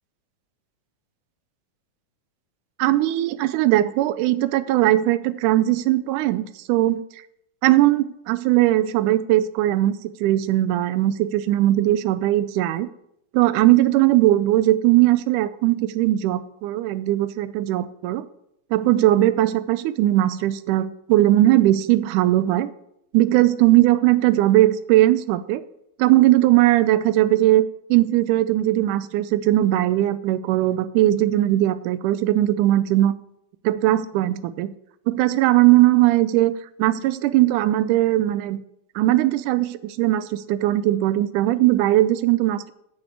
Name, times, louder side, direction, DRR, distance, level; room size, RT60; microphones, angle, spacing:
voice 1, 2.8-7.0 7.6-9.9 10.2-12.9 13.3-18.3 18.7-22.7 23.1-25.6 26.0-33.1 33.6-34.7 35.1-36.5 36.8-38.6 39.0-42.7, right 15 dB, 90° right, 14 dB, 2.1 m, -19 dB
7.0 x 6.6 x 6.8 m, 0.76 s
omnidirectional pair, 3.5 m